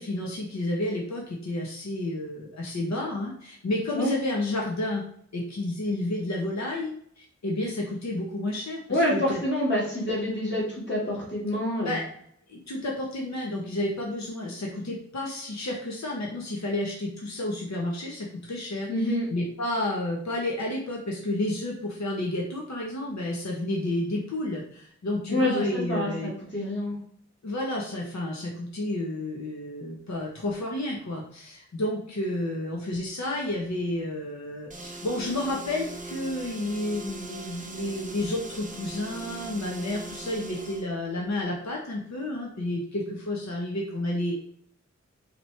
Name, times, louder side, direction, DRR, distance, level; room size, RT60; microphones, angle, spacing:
voice 1, 0.0-5.0 5.3-9.4 11.8-12.1 12.5-26.3 27.4-44.3, left 1 dB, 65° left, -2 dB, 0.9 m, -31 dB
voice 2, 8.9-12.0 18.9-19.3 25.3-26.9, left 1 dB, 40° left, -7 dB, 1.6 m, -27 dB
sound 1, 34.7-40.9, right 2 dB, 25° right, 0.6 m, -40 dB
4.1 x 3.0 x 3.2 m, 0.65 s
wide cardioid pair, 50°, 29 cm